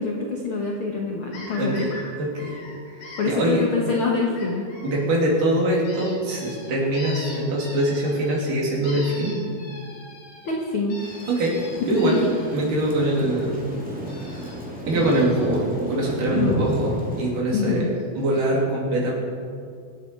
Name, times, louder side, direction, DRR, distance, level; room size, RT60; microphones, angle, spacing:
voice 1, 0.0-1.9 3.2-4.7 10.4-11.0 12.0-12.2 16.3-16.6 17.5-17.9, left 4 dB, 70° left, -1 dB, 1.2 m, -25 dB
sound 1, 1.3-2.0 2.4-3.2 4.4-5.0 5.8-8.5 8.8-12.6 14.1-14.6 14.9-15.6 17.5-17.6 18.0-18.1 18.3-18.4, left 1 dB, 90° left, 6.8 m, -41 dB
voice 2, 1.6-1.9 2.2-2.5 2.9-3.7 4.8-9.4 11.3-11.6 11.9-12.2 12.5-13.7 14.1-14.4 14.9-17.9 18.2-19.1, right 1 dB, 60° right, -3 dB, 4.2 m, -23 dB
Thunder / Rain, 11.0-17.3, equal, 5° right, 1.3 m, -32 dB
24.5 x 8.6 x 4.5 m, 2.3 s
omnidirectional pair, 4.3 m